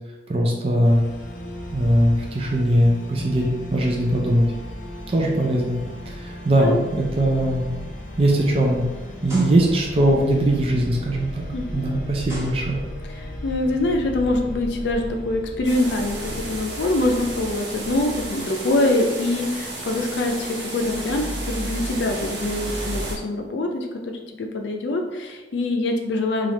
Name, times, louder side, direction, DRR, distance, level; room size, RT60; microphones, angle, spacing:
voice 1, 0.3-1.0 1.7-4.5 5.1-5.8 6.1-7.7 8.2-8.9 9.2-11.4 11.7-12.8, right 1 dB, 30° right, -2 dB, 0.4 m, -20 dB
sound 1, 0.8-18.3, equal, 45° left, 0.7 m, -35 dB
sound 2, 6.2-6.4 6.9-7.1 7.8-7.9 9.2-10.0 11.5-11.6 12.2-13.2, right 1 dB, 15° right, 1.0 m, -39 dB
voice 2, 11.5-12.0 13.1-26.5, left 2 dB, 80° left, 3 dB, 0.4 m, -24 dB
sound 3, 15.6-23.2, right 1 dB, 75° right, 1.0 m, -32 dB
3.2 x 2.4 x 4.0 m, 1.1 s
head